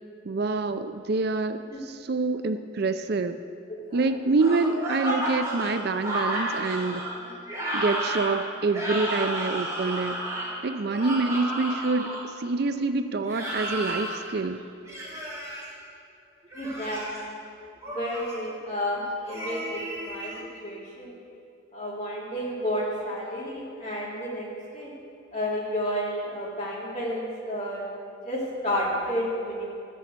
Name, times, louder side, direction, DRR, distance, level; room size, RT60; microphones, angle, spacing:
voice 1, 0.3-1.6 1.9-3.4 3.9-7.0 7.7-10.2 10.6-14.6, right 3 dB, 55° right, 10 dB, 0.5 m, -26 dB
voice 2, 3.7-4.0 14.5-14.7 16.5-17.4 17.9-21.1 21.7-24.9 25.3-27.9 28.2-29.7, equal, 35° left, -7 dB, 3.7 m, -31 dB
sound 1, 4.4-12.2 13.2-14.2 14.9-15.6 16.4-17.2 17.8-18.4 19.3-20.4, right 1 dB, 15° right, 3.7 m, -32 dB
14.0 x 7.1 x 8.2 m, 2.5 s
head